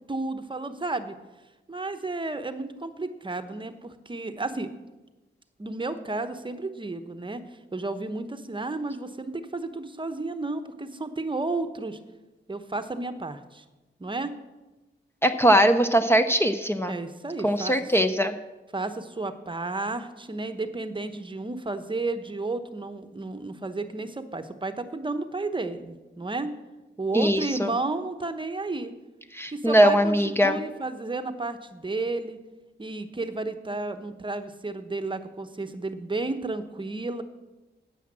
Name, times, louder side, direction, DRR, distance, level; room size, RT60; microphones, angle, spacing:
voice 1, 0.1-1.1 1.7-4.7 5.6-7.4 7.7-12.0 12.5-13.6 14.0-14.3 16.9-17.9 18.7-26.6 27.0-28.9 29.5-32.4 32.8-37.2, right 3 dB, 25° right, 9 dB, 0.9 m, -32 dB
voice 2, 15.2-16.9 17.4-18.4 27.1-27.7 29.3-30.6, equal, 10° left, 8 dB, 0.7 m, -21 dB
9.9 x 8.6 x 7.5 m, 1.1 s
cardioid pair, 80°, 19 cm